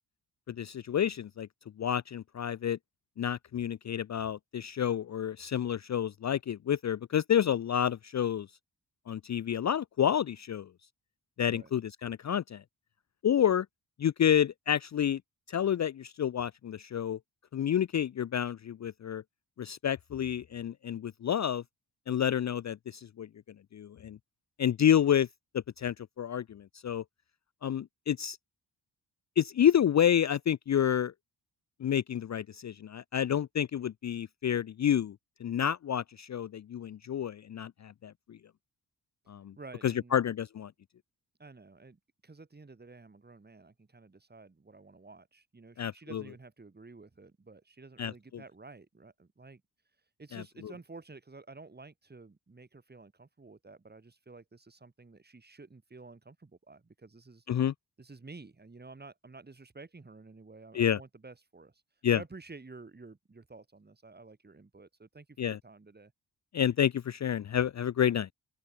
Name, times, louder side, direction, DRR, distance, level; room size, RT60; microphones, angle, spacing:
voice 1, 0.5-1.5 1.8-2.8 3.2-8.5 9.1-10.7 11.4-12.6 13.2-13.7 14.0-15.2 15.5-17.2 17.5-19.2 19.6-21.6 22.1-23.3 23.7-24.2 24.6-25.3 25.5-27.0 27.6-28.4 29.4-31.1 31.8-35.2 35.4-38.4 39.3-39.5 39.8-40.7 45.8-46.2 48.0-48.1 50.3-50.4 57.5-57.7 60.7-61.0 62.0-62.2 65.4-65.6 66.5-68.3, left 9 dB, 45° left, 0.6 m, -29 dB
voice 2, 39.6-40.2 41.4-49.6 50.2-57.5 58.0-61.7 62.1-66.1, right 3 dB, 25° right, 4.9 m, -51 dB
open air
wide cardioid pair, 120°, 39 cm